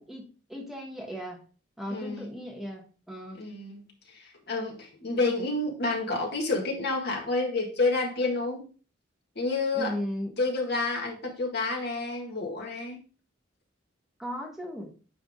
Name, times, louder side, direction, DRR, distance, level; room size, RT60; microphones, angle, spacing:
voice 1, 0.0-1.4 1.8-3.4 5.0-5.1 9.7-10.3 14.2-14.9, equal, ahead, 0 dB, 1.2 m, -37 dB
voice 2, 1.9-2.3 3.3-8.6 9.3-10.0 10.4-13.0, left 3 dB, 60° left, 1 dB, 1.7 m, -29 dB
9.3 x 3.6 x 3.5 m, 0.38 s
head